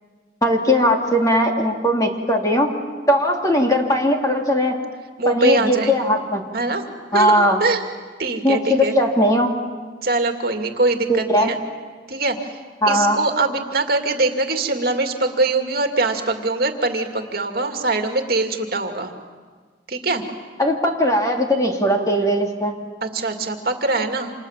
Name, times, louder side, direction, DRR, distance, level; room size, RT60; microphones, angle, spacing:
voice 1, 0.4-2.7 3.1-4.7 5.2-6.4 7.1-7.6 8.4-9.5 11.1-11.5 12.8-13.2 20.6-22.7, equal, 20° left, 1 dB, 2.8 m, -19 dB
voice 2, 5.2-5.9 6.5-6.9 7.1-7.8 8.2-8.9 10.0-11.6 12.1-12.6 12.9-19.1 19.9-20.2 23.0-24.3, right 3 dB, 60° right, 4 dB, 2.3 m, -22 dB
29.5 x 27.5 x 7.4 m, 1.5 s
head